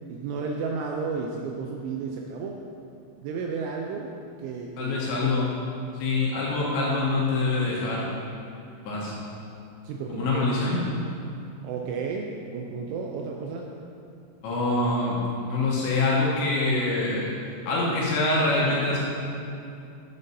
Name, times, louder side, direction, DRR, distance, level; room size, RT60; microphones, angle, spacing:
voice 1, 0.1-2.6 3.2-4.1 4.4-5.3 5.6-5.7 6.3-6.5 9.8-10.4 11.6-13.7, right 5 dB, 85° right, 1 dB, 2.8 m, -33 dB
voice 2, 4.8-5.5 5.9-8.1 8.7-9.1 10.1-10.8 14.4-17.3 17.7-19.0, left 2 dB, 75° left, -5 dB, 3.0 m, -25 dB
9.3 x 9.0 x 2.7 m, 2.6 s
omnidirectional pair, 6.0 m